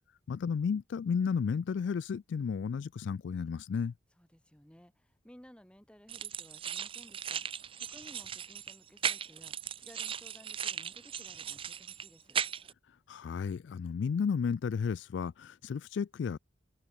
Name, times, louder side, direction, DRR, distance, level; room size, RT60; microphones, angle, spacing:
voice 1, 0.3-3.9 13.1-16.4, left 6 dB, 70° left, 0.3 m, -33 dB
voice 2, 4.2-12.4, equal, 5° left, 1.6 m, -57 dB
sound 1, 6.1-12.7, right 8 dB, 30° right, 0.5 m, -37 dB
head